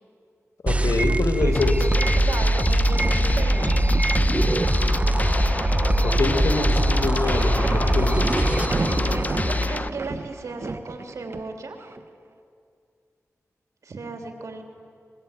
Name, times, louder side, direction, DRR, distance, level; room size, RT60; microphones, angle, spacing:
voice 1, 0.6-1.8 6.0-8.3, left 3 dB, 75° left, 6 dB, 2.0 m, -25 dB
sound 1, 0.7-9.7, right 1 dB, 25° right, 0.7 m, -22 dB
voice 2, 1.4-3.8 9.5-11.8 13.8-14.6, right 3 dB, 80° right, 4 dB, 3.2 m, -35 dB
sound 2, 1.5-9.9, left 2 dB, 30° left, 0.7 m, -26 dB
sound 3, 2.6-12.0, right 3 dB, 50° right, 1.0 m, -34 dB
23.5 x 22.0 x 9.1 m, 2.3 s
wide cardioid pair, 70°, 5 cm